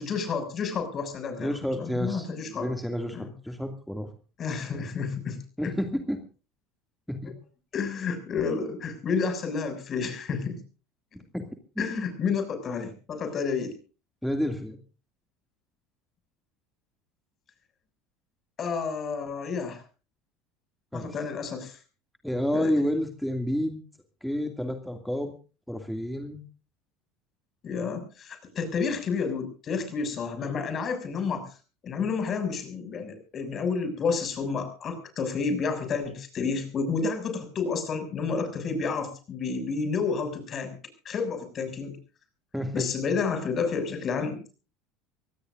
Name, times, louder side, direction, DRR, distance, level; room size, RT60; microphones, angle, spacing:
voice 1, 0.0-2.7 3.1-3.3 4.4-5.7 7.7-10.6 11.8-13.8 18.6-19.8 20.9-21.8 22.5-22.7 27.6-31.6 31.8-40.8 41.0-42.0 42.7-44.4, left 5 dB, 40° left, 8 dB, 6.7 m, -30 dB
voice 2, 1.4-2.3 2.5-4.1 5.6-6.2 7.1-7.3 11.3-11.4 11.8-11.9 14.2-14.8 20.9-21.1 22.2-23.8 24.2-25.3 25.7-26.4 42.5-42.9, equal, ahead, 4 dB, 2.5 m, -29 dB
24.5 x 18.5 x 2.6 m, 0.36 s
hypercardioid pair, 75°, 0 cm